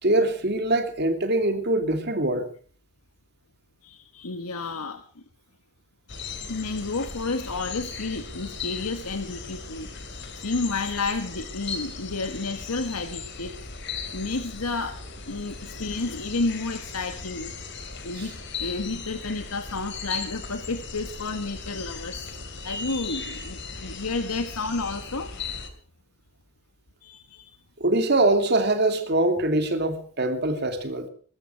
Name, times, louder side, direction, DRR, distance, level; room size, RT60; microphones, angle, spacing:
voice 1, 0.0-2.5 27.8-31.1, right 2 dB, 50° right, 2.7 m, -23 dB
voice 2, 3.8-5.2 6.5-9.9 10.4-13.5 14.1-15.0 15.2-17.5 18.0-22.4 22.6-25.3 27.0-27.6, left 3 dB, 85° left, 1.4 m, -31 dB
sound 1, 6.1-25.7, left 5 dB, 55° left, 2.7 m, -37 dB
22.0 x 13.0 x 4.6 m
head